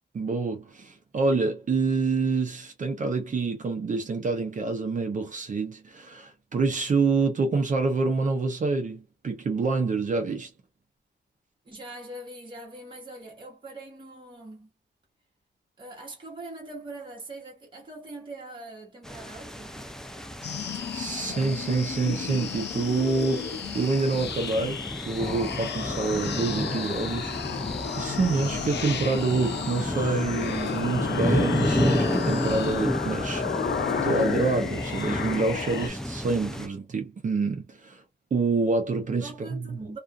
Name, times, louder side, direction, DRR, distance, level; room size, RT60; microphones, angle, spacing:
voice 1, 0.1-10.5 20.9-24.8 25.1-27.3 28.0-33.7 34.0-38.0 38.3-39.8, right 4 dB, 45° right, 0.6 m, -27 dB
voice 2, 11.6-14.7 15.8-19.9 39.2-40.0, right 2 dB, 25° right, 1.2 m, -42 dB
sound 1, 19.0-36.7, equal, 5° left, 0.3 m, -32 dB
sound 2, 20.4-35.9, left 7 dB, 65° left, 0.5 m, -32 dB
2.4 x 2.4 x 2.4 m
wide cardioid pair, 150°, 19 cm